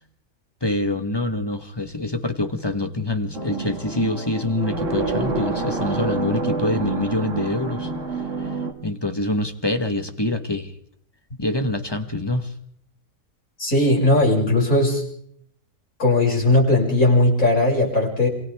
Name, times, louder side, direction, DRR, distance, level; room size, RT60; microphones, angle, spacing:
voice 1, 0.6-7.9 8.4-8.5 8.8-10.7 11.4-12.5, left 2 dB, 15° left, 8 dB, 1.3 m, -25 dB
sound 1, 3.3-8.7, right 3 dB, 50° right, 2.4 m, -27 dB
voice 2, 13.6-15.0 16.0-18.3, left 2 dB, 60° left, -3 dB, 7.0 m, -18 dB
27.5 x 26.5 x 3.6 m, 0.67 s
omnidirectional pair, 1.7 m